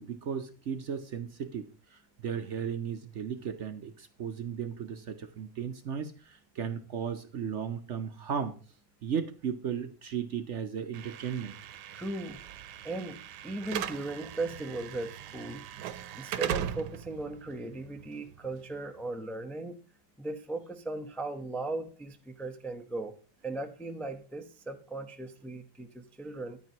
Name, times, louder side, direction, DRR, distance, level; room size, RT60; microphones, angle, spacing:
voice 1, 0.0-8.6 9.0-11.5, right 7 dB, 60° right, 7 dB, 0.8 m, -35 dB
Slam / Alarm, 10.9-19.0, right 10 dB, 80° right, 1.3 m, -39 dB
voice 2, 11.9-12.4 12.8-15.7 16.2-19.8 20.2-23.1 23.4-26.6, right 2 dB, ahead, 5 dB, 0.3 m, -37 dB
13.5 x 9.8 x 2.9 m, 0.38 s
omnidirectional pair, 1.8 m